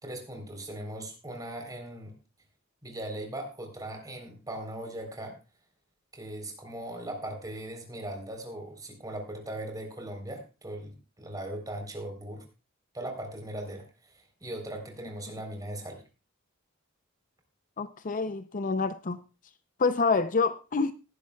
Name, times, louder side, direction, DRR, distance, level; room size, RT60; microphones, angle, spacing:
voice 1, 0.0-2.2 2.8-5.4 6.1-12.4 12.9-16.0, right 1 dB, 20° right, 4 dB, 3.7 m, -39 dB
voice 2, 17.8-19.2 19.8-20.9, left 4 dB, 40° left, 11 dB, 0.6 m, -27 dB
19.5 x 11.0 x 2.3 m, 0.30 s
head